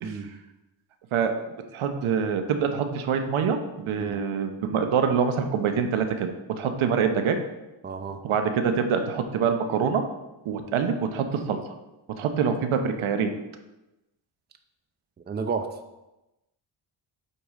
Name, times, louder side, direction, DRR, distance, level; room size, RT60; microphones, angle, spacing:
voice 1, 1.7-7.4 8.2-10.0 10.4-11.6 12.2-13.3, right 6 dB, 80° right, 7 dB, 0.9 m, -25 dB
voice 2, 7.8-8.2 15.3-15.7, right 5 dB, 20° right, 7 dB, 0.6 m, -31 dB
8.4 x 4.8 x 3.7 m, 0.99 s
cardioid pair, 100°, 48 cm